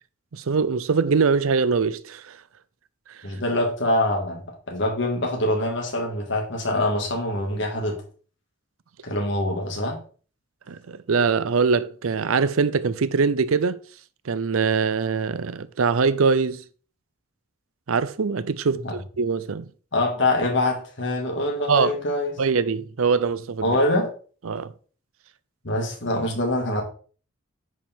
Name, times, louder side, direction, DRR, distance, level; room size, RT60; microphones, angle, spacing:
voice 1, 0.3-2.4 10.7-13.8 14.3-16.6 17.9-19.7 21.7-21.9 22.4-23.7 24.5-24.7, right 5 dB, 90° right, 0.6 m, -23 dB
voice 2, 3.2-8.0 9.0-10.0 18.8-18.9 19.9-22.3 23.6-24.1 25.6-26.8, left 1 dB, 60° left, 2.2 m, -24 dB
10.0 x 5.0 x 3.7 m
head